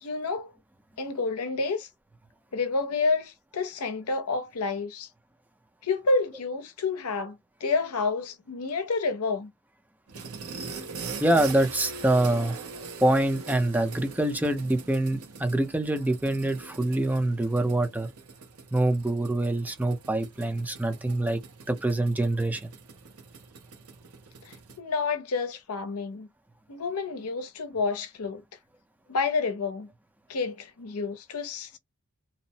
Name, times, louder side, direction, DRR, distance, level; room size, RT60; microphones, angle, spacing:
voice 1, 0.0-0.5 1.0-1.9 2.5-5.1 5.8-9.5 24.4-26.3 26.7-28.4 29.1-29.9 30.3-31.8, left 4 dB, 80° left, 0.6 m, -29 dB
sound 1, 10.1-24.8, right 4 dB, 80° right, 0.9 m, -42 dB
voice 2, 11.2-12.6 13.0-18.1 18.7-21.4 21.7-22.7, right 1 dB, 10° right, 0.5 m, -25 dB
2.8 x 2.0 x 2.7 m
head